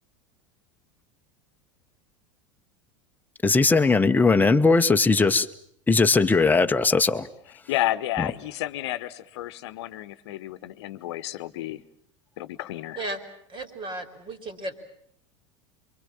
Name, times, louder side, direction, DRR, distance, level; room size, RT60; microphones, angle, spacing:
voice 1, 3.4-5.5 5.9-7.3 8.2-8.3, left 3 dB, 10° left, 7 dB, 1.3 m, -19 dB
voice 2, 7.7-11.8 12.4-13.0, left 14 dB, 60° left, 15 dB, 1.2 m, -31 dB
voice 3, 13.5-14.8, right 2 dB, 30° right, 9 dB, 4.0 m, -34 dB
28.0 x 24.0 x 7.4 m, 0.69 s
figure-of-eight pair, 80°, 16 cm